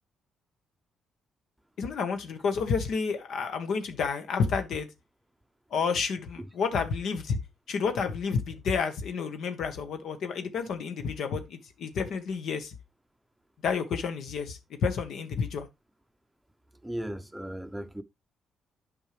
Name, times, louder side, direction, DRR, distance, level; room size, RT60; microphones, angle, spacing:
voice 1, 1.8-4.9 5.7-7.4 7.7-12.7 13.6-15.7, left 5 dB, 70° left, 1.2 m, -30 dB
voice 2, 16.8-18.0, right 1 dB, 5° right, 0.7 m, -36 dB
8.8 x 5.4 x 3.2 m
cardioid pair, 90°, 0 cm